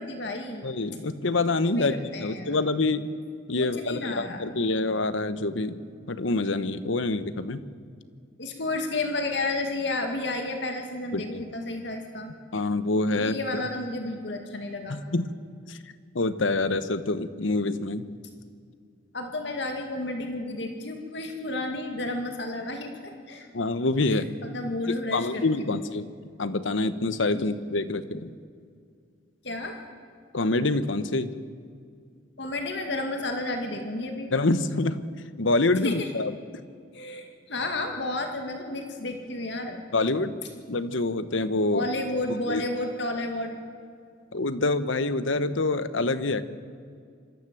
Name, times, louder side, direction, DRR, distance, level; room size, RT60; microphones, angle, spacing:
voice 1, 0.0-0.7 1.7-2.6 3.6-4.5 8.4-12.3 13.1-15.0 19.1-23.5 24.1-25.8 27.3-27.5 29.4-29.8 32.4-34.3 35.8-36.1 36.9-39.8 41.7-43.6, left 2 dB, 60° left, 4 dB, 2.3 m, -32 dB
voice 2, 0.6-3.1 3.5-5.8 6.1-7.6 11.1-11.4 12.5-13.6 14.9-15.3 15.7-15.8 16.1-18.1 23.5-24.3 24.8-26.1 26.4-28.3 30.3-31.3 34.3-35.1 35.4-36.3 39.9-40.4 40.7-41.8 42.5-42.6 44.3-46.4, left 2 dB, 80° left, 13 dB, 1.0 m, -26 dB
26.0 x 13.5 x 7.7 m, 2.2 s
head